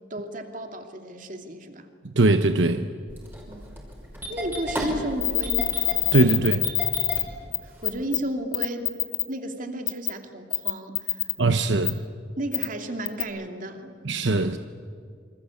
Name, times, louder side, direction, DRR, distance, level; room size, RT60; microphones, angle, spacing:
voice 1, 0.1-1.9 3.5-3.7 4.3-5.8 7.6-8.9 9.3-11.3 12.4-13.9, right 1 dB, 45° right, 5 dB, 2.7 m, -33 dB
voice 2, 2.0-2.9 6.1-6.7 11.4-12.0 14.0-14.6, right 2 dB, 75° right, 9 dB, 0.9 m, -21 dB
Engine starting, 3.1-8.0, equal, 10° right, 5.6 m, -34 dB
sound 1, 5.2-7.2 7.5-7.6 7.8-8.2 8.5-9.2 9.9-10.1 10.5-11.3 11.8-11.9 12.5-12.7 13.1-13.2, left 19 dB, 80° left, 1.5 m, -24 dB
27.5 x 26.0 x 8.5 m, 2.2 s
head